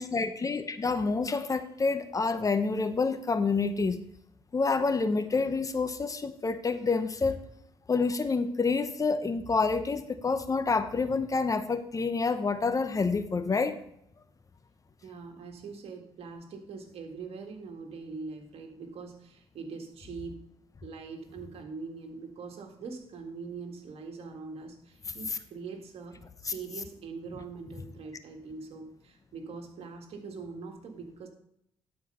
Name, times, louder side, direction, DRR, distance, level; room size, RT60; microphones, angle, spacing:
voice 1, 0.0-4.0 4.5-7.4 7.9-13.8 26.4-26.5, left 4 dB, 30° left, 11 dB, 0.8 m, -28 dB
voice 2, 15.0-20.5 20.8-31.3, right 4 dB, 70° right, 4 dB, 1.8 m, -43 dB
11.5 x 4.6 x 5.4 m, 0.75 s
cardioid pair, 75°, 11 cm